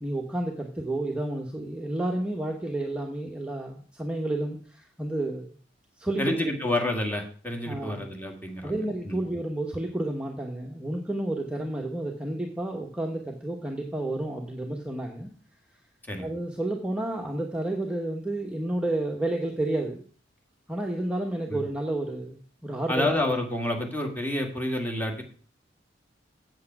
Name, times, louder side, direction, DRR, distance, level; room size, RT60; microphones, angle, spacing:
voice 1, 0.0-5.5 6.0-6.4 7.7-8.1 8.6-15.3 16.2-20.0 20.7-22.4 22.6-23.3, right 1 dB, 5° right, 1 dB, 1.0 m, -31 dB
voice 2, 6.2-8.8 9.0-9.2 16.1-16.3 21.5-21.6 22.9-25.2, left 1 dB, 10° left, 2 dB, 2.0 m, -29 dB
8.4 x 7.9 x 5.9 m, 0.43 s
head